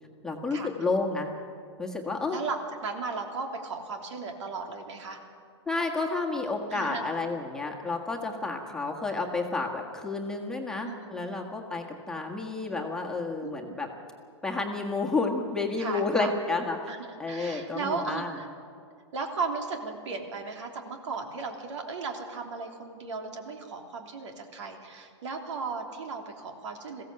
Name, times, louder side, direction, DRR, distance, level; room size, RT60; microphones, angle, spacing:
voice 1, 0.2-1.3 1.8-2.4 5.7-13.9 14.4-16.8 17.2-18.3, left 3 dB, 5° left, 0 dB, 1.7 m, -30 dB
voice 2, 2.3-5.2 6.7-7.0 10.8-11.3 13.4-13.8 15.8-16.3 16.9-18.5 19.1-27.0, right 4 dB, 75° right, 3 dB, 3.1 m, -36 dB
21.5 x 16.0 x 7.7 m, 2.3 s
hypercardioid pair, 145°, 15 cm